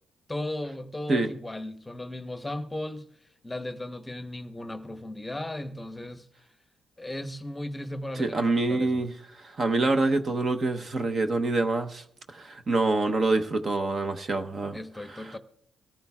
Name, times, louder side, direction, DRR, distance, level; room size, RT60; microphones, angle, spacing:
voice 1, 0.3-3.1 3.4-6.3 7.0-9.0 14.7-15.4, left 1 dB, 10° left, 0.9 m, -36 dB
voice 2, 8.1-14.8 15.1-15.2, right 2 dB, 40° right, 0.9 m, -26 dB
23.5 x 14.0 x 2.4 m
cardioid pair, 90°, 0 cm